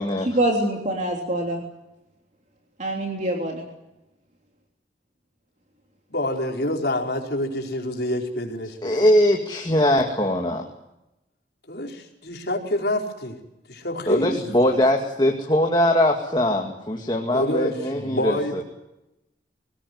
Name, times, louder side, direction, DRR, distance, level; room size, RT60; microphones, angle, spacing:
voice 1, 0.3-1.6 2.8-3.6, right 1 dB, 40° right, 2 dB, 3.4 m, -24 dB
voice 2, 6.1-9.1 11.7-13.4 13.7-14.8 17.3-18.6, left 1 dB, 60° left, 2 dB, 4.8 m, -27 dB
voice 3, 8.8-10.6 14.1-18.6, left 1 dB, 25° left, 2 dB, 2.4 m, -21 dB
24.0 x 19.5 x 9.6 m, 0.92 s
head